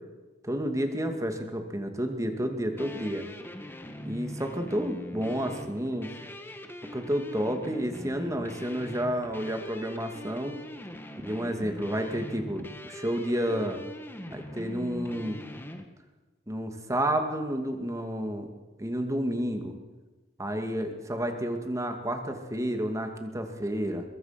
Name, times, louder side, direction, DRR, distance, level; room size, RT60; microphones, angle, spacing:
voice 1, 0.4-3.3 4.0-6.1 6.8-10.6 11.2-13.8 14.3-15.4 16.5-18.5 18.8-19.8 20.4-24.0, equal, 20° right, 5 dB, 2.3 m, -30 dB
sound 1, 2.8-15.8, left 1 dB, 10° left, 1.6 m, -42 dB
23.0 x 22.0 x 5.9 m, 1.2 s
head